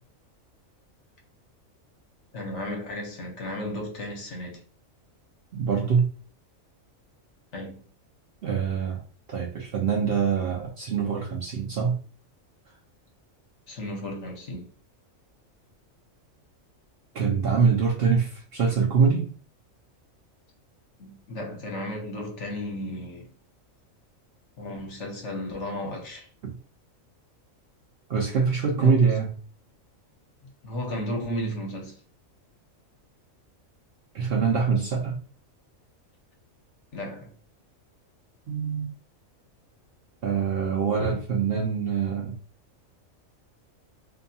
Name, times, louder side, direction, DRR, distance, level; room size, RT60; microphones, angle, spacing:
voice 1, 2.3-4.6 7.5-7.8 13.7-14.7 21.0-23.3 24.6-26.3 28.7-29.2 30.6-32.0 36.9-37.3, equal, 65° left, 1.0 m, -34 dB
voice 2, 5.5-6.1 8.4-9.0 9.3-12.0 17.1-19.3 28.1-29.3 34.1-35.2 38.5-38.9 40.2-42.3, right 6 dB, 60° right, 0.6 m, -24 dB
2.7 x 2.2 x 2.6 m
omnidirectional pair, 1.4 m